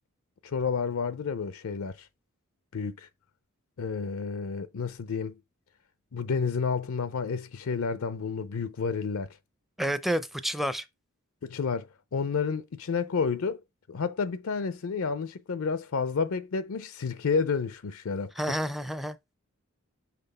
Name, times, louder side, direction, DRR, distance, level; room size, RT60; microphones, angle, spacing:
voice 1, 0.4-2.1 2.7-3.1 3.8-5.4 6.1-9.3 11.4-13.6 13.9-18.3, left 5 dB, 70° left, 0.5 m, -30 dB
voice 2, 9.8-10.9 18.4-19.2, equal, ahead, 0.5 m, -29 dB
5.9 x 3.4 x 5.4 m
head